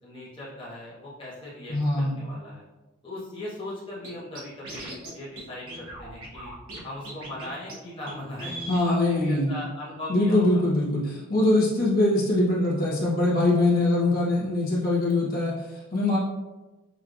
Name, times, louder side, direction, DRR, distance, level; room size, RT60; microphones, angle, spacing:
voice 1, 0.0-2.6 3.0-6.5 6.8-10.6, left 1 dB, 20° left, -10 dB, 1.0 m, -39 dB
voice 2, 1.7-2.2 8.7-9.5 10.1-16.2, left 2 dB, 40° left, -6 dB, 1.2 m, -23 dB
Scratching (performance technique), 4.0-4.1 4.4-5.1 5.4-5.5 5.7-6.8 7.0-7.4 7.7-7.8 8.1-8.2 8.4-8.8, right 1 dB, 65° right, 1.2 m, -38 dB
6.1 x 3.3 x 2.5 m, 1.2 s
head